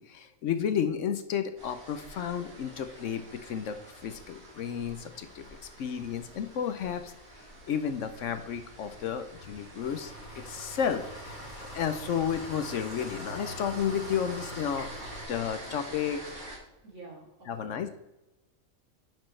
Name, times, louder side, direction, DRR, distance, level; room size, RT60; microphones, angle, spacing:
voice 1, 0.0-5.4 5.8-7.1 7.7-11.5 11.7-14.9 15.3-16.2 17.5-17.9, left 8 dB, 70° left, 10 dB, 1.0 m, -32 dB
sound 1, 1.6-16.6, right 1 dB, 85° right, 2.4 m, -46 dB
Engine, 9.8-15.2, equal, 90° left, 3.7 m, -44 dB
voice 2, 16.8-17.9, right 3 dB, 65° right, -4 dB, 3.3 m, -48 dB
10.5 x 6.4 x 3.2 m, 0.95 s
omnidirectional pair, 1.4 m